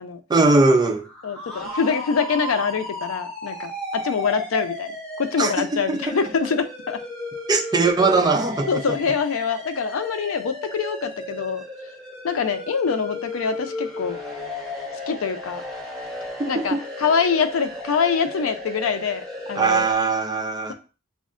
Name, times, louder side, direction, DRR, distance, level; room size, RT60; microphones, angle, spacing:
voice 1, 0.3-1.0 5.4-6.0 7.5-8.7 16.4-16.8 19.6-20.7, right 3 dB, 20° right, 0.4 m, -20 dB
sound 1, 0.9-19.9, left 1 dB, 5° left, 0.9 m, -34 dB
voice 2, 1.2-4.9 5.2-7.0 8.7-11.6 12.2-14.2 15.1-15.6 16.5-19.9, left 6 dB, 85° left, 0.5 m, -24 dB
6.1 x 2.0 x 2.4 m
head